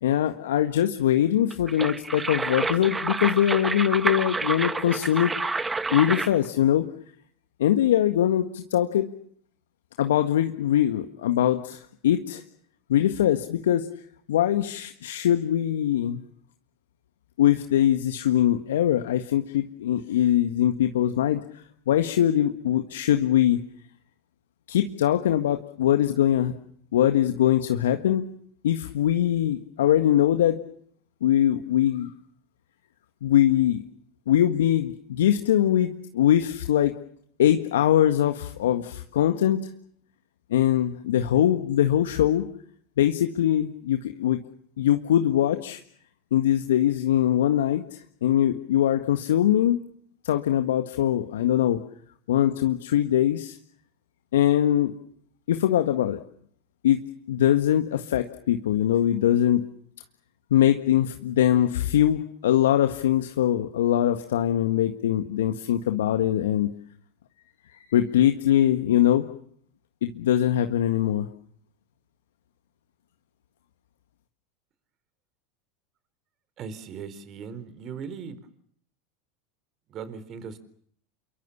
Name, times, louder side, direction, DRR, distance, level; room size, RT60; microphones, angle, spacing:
voice 1, 0.0-5.3 5.9-6.8 7.6-9.1 10.0-12.4 12.9-13.9 14.3-16.2 17.4-23.6 24.7-26.5 26.9-28.3 28.6-30.6 31.2-32.1 33.2-33.8 34.3-36.9 37.4-39.7 40.5-42.5 43.0-44.4 44.8-45.8 46.3-49.8 50.2-51.8 52.3-53.6 54.3-54.9 55.5-56.2 56.8-59.6 60.5-66.7 67.6-69.3 70.0-71.3, left 11 dB, 75° left, 7 dB, 1.7 m, -22 dB
sound 1, 1.5-6.5, right 3 dB, 15° right, 1.6 m, -29 dB
voice 2, 76.6-78.4 79.9-80.6, right 6 dB, 40° right, 14 dB, 4.2 m, -38 dB
29.5 x 23.5 x 7.3 m, 0.64 s
hypercardioid pair, 90°, 0 cm